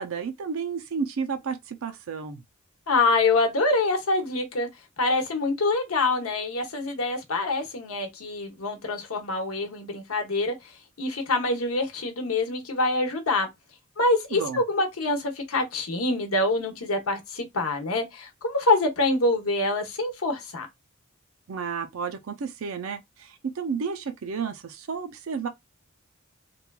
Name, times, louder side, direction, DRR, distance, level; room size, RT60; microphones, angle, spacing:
voice 1, 0.0-2.4 14.3-14.6 21.5-25.5, right 5 dB, 75° right, 0.4 m, -32 dB
voice 2, 2.9-4.7 5.0-10.5 11.0-13.5 14.0-20.7, left 2 dB, 85° left, 0.8 m, -25 dB
3.1 x 2.3 x 2.2 m
head